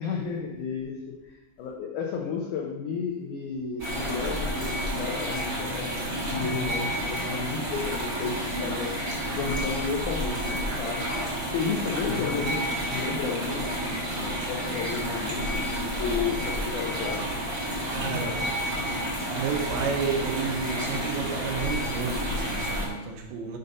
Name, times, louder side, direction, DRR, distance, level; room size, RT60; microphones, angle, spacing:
voice 1, 0.0-11.1 11.5-17.3, left 5 dB, 90° left, 0 dB, 1.7 m, -33 dB
sound 1, 3.8-22.9, equal, 45° right, 1.2 m, -30 dB
voice 2, 17.9-18.4 19.3-23.6, right 5 dB, 80° right, 2 dB, 2.9 m, -31 dB
6.9 x 4.0 x 5.4 m, 1.0 s
omnidirectional pair, 4.5 m